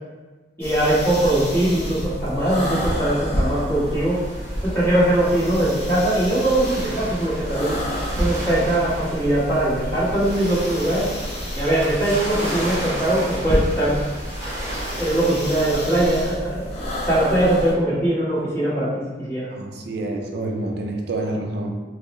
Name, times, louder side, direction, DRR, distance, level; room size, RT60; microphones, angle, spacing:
sound 1, 0.6-17.7, equal, 35° left, 0.8 m, -29 dB
voice 1, 0.6-4.2 4.6-7.8 8.2-11.1 11.5-14.0 14.9-19.5, right 1 dB, 15° left, -10 dB, 1.4 m, -21 dB
sound 2, 3.9-16.1, right 1 dB, 20° right, 1.1 m, -35 dB
voice 2, 19.5-21.7, right 2 dB, 65° right, 2 dB, 0.5 m, -28 dB
4.4 x 2.0 x 3.0 m, 1.3 s
head